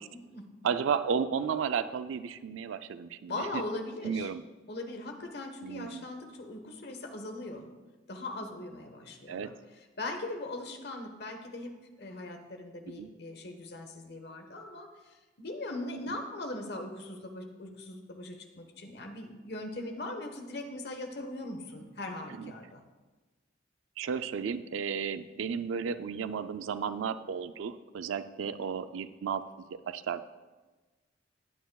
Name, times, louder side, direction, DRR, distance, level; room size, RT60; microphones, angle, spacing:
voice 1, 0.1-0.5 3.3-4.3 4.7-7.7 8.1-9.5 10.0-22.8, left 2 dB, 55° left, 4 dB, 1.2 m, -40 dB
voice 2, 0.6-3.6 4.0-4.4 5.6-6.0 9.3-9.6 13.0-13.1 22.4-22.5 24.0-30.2, right 6 dB, 85° right, 12 dB, 0.4 m, -33 dB
16.0 x 9.3 x 2.3 m, 1.2 s
head